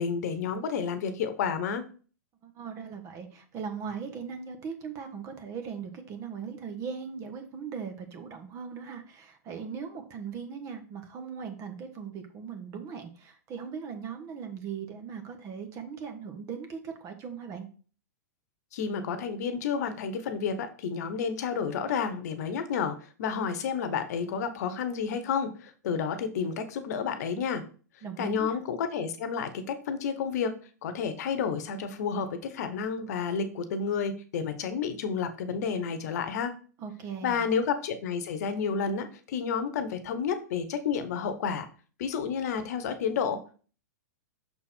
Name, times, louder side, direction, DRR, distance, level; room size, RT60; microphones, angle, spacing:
voice 1, 0.0-1.9 18.7-27.6 28.2-36.5 37.2-41.7 42.0-43.6, left 6 dB, 60° left, 10 dB, 1.0 m, -30 dB
voice 2, 2.4-17.7 28.0-28.6 36.8-37.4, right 6 dB, 35° right, 7 dB, 1.3 m, -39 dB
6.2 x 4.3 x 4.3 m, 0.39 s
hypercardioid pair, 125°, 10 cm